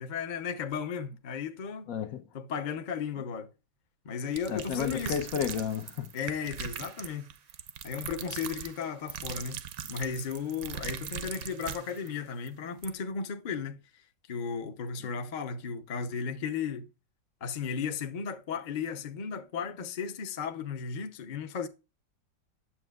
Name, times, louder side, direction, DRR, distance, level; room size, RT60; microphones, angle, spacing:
voice 1, 0.0-1.9 2.3-3.5 4.0-5.2 6.1-7.3 7.8-16.9 17.4-21.7, left 6 dB, 45° left, 0.6 m, -35 dB
voice 2, 1.9-2.3 4.5-6.1, left 8 dB, 65° left, 1.0 m, -32 dB
sound 1, 4.3-12.1 12.5-12.6 12.8-12.9, right 9 dB, 65° right, 1.0 m, -40 dB
8.6 x 7.5 x 2.3 m
omnidirectional pair, 1.8 m